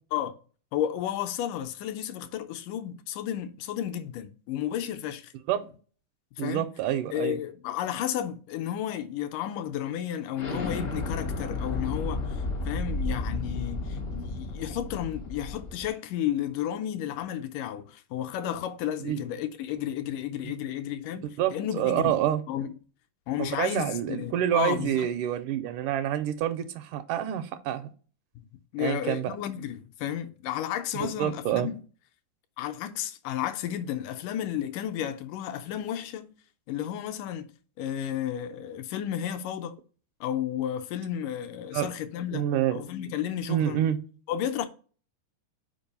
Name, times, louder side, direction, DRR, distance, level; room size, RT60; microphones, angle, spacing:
voice 1, 0.7-5.3 6.4-6.7 7.1-12.2 12.7-22.2 22.5-22.7 23.3-25.1 28.4-28.5 28.7-31.8 32.6-36.3 36.7-37.4 37.8-39.8 40.2-42.4 42.7-43.8 44.3-44.7, left 10 dB, 80° left, 2.1 m, -32 dB
voice 2, 6.4-7.4 19.0-19.2 20.4-20.5 21.4-22.4 23.4-27.8 28.8-29.4 31.0-31.7 41.7-41.9 42.3-42.8 43.5-44.0, right 11 dB, 80° right, 2.1 m, -27 dB
Explosion, 10.4-15.9, left 2 dB, 60° left, 0.7 m, -32 dB
5.3 x 4.7 x 5.3 m
omnidirectional pair, 3.8 m